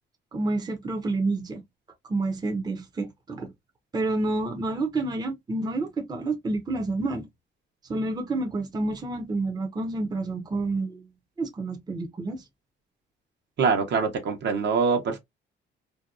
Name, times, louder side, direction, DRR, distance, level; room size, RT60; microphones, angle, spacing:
voice 1, 0.3-1.6 2.1-3.5 3.9-7.3 7.9-11.0 11.4-12.4, right 2 dB, 20° right, 0.6 m, -29 dB
voice 2, 13.6-15.2, right 5 dB, 60° right, 0.9 m, -24 dB
2.6 x 2.1 x 2.4 m
cardioid pair, 90°, 20 cm